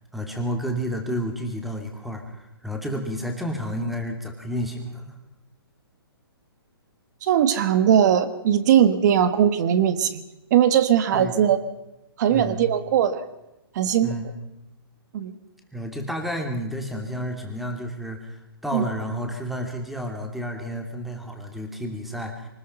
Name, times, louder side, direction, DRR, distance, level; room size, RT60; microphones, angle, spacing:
voice 1, 0.1-5.1 11.1-11.3 12.3-12.6 14.0-14.3 15.7-18.4 18.6-22.5, equal, ahead, 3 dB, 2.7 m, -30 dB
voice 2, 7.2-10.2 10.5-11.6 12.2-13.2 13.7-14.1 15.1-15.3 18.7-18.8, right 9 dB, 45° right, 12 dB, 1.6 m, -19 dB
24.0 x 20.0 x 5.6 m, 0.94 s
hypercardioid pair, 150°, 13 cm